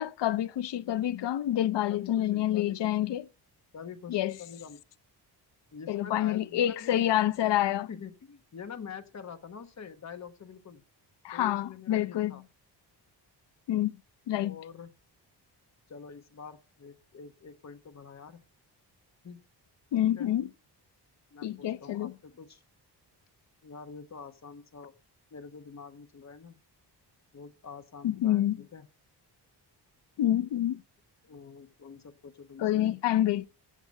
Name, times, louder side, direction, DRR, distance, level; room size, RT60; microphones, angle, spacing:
voice 1, 0.0-3.3 4.1-4.3 5.9-7.9 11.2-12.4 13.7-14.0 14.3-14.6 19.9-20.5 21.4-22.1 28.0-28.6 30.2-30.8 32.6-33.5, left 12 dB, 80° left, 0.7 m, -27 dB
voice 2, 1.9-3.1 3.7-4.8 5.7-7.1 7.9-10.8 11.3-12.4 14.4-14.9 15.9-18.4 19.2-19.4 20.0-20.3 21.3-22.6 23.6-24.9 25.3-26.6 27.3-28.9 31.2-33.0, left 6 dB, 40° left, 1.2 m, -46 dB
15.0 x 9.0 x 5.4 m
wide cardioid pair, 160°, 41 cm